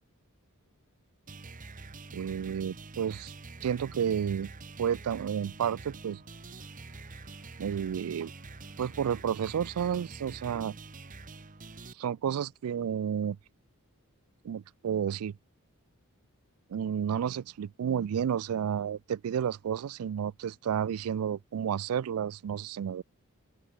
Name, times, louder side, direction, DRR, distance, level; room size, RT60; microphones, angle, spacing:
evil chord shit, 1.3-11.9, right 3 dB, 35° right, 1.1 m, -46 dB
voice 1, 2.1-3.3 3.6-4.5 4.8-6.2 7.6-8.3 8.8-10.7 12.0-13.4 14.4-15.3 16.7-23.0, right 8 dB, 75° right, 0.3 m, -31 dB
sound 1, 5.3-11.8, right 1 dB, 10° right, 5.1 m, -70 dB
open air
head